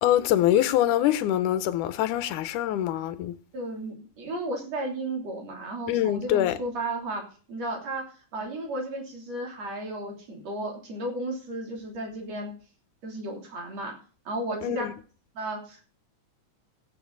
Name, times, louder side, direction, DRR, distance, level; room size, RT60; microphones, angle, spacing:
voice 1, 0.0-3.3 5.9-6.6 14.6-14.9, left 12 dB, 80° left, 2.3 m, -24 dB
voice 2, 3.5-7.2 7.5-8.0 8.3-12.5 13.0-13.9 14.3-14.9 15.3-15.9, right 1 dB, 55° right, 4.3 m, -34 dB
15.5 x 9.2 x 4.0 m
omnidirectional pair, 3.7 m